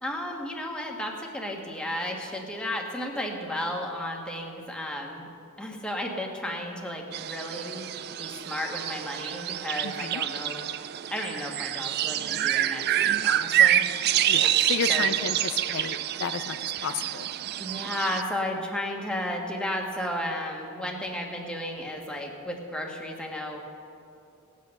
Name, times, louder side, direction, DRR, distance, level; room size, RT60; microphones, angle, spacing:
voice 1, 0.0-5.3 5.6-7.9 8.2-10.7 11.1-14.0 14.4-14.5 14.9-15.1 17.6-23.6, left 1 dB, 5° left, 0 dB, 1.5 m, -33 dB
sound 1, 7.1-18.2, right 11 dB, 50° right, 0.3 m, -27 dB
voice 2, 9.8-10.2 14.3-17.3, left 6 dB, 60° left, 9 dB, 0.5 m, -33 dB
17.5 x 8.4 x 6.5 m, 2.6 s
head